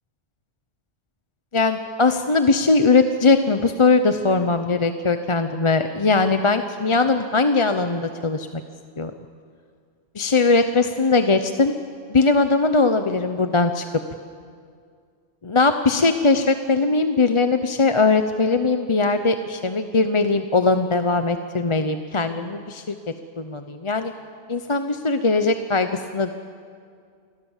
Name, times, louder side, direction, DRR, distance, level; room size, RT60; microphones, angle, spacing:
voice 1, 1.5-8.6 9.0-9.1 10.1-11.7 12.1-13.8 15.4-22.9 23.4-24.1 24.5-26.3, left 3 dB, 30° left, 8 dB, 0.8 m, -20 dB
28.5 x 21.5 x 7.3 m, 2.2 s
omnidirectional pair, 1.2 m